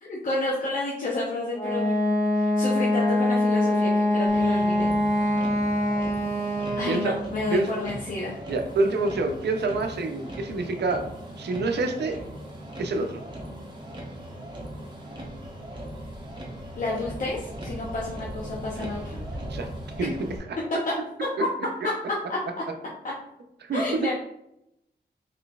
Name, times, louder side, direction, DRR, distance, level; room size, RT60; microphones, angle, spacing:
voice 1, 0.0-4.9 6.7-8.3 16.8-19.2 20.9-21.0 22.1-22.4 23.7-24.1, left 2 dB, 50° left, -6 dB, 0.7 m, -30 dB
Wind instrument woodwind instrument, 1.5-7.2, left 1 dB, 15° left, 0.6 m, -24 dB
Motor vehicle (road), 4.3-20.4, right 1 dB, 25° right, 0.8 m, -39 dB
voice 2, 8.5-11.0 11.4-12.2 12.8-13.2 19.5-19.7 20.0-20.1 23.6-24.1, right 3 dB, 80° right, 5 dB, 0.5 m, -26 dB
3.9 x 3.1 x 2.3 m, 0.81 s
wide cardioid pair, 130°, 17 cm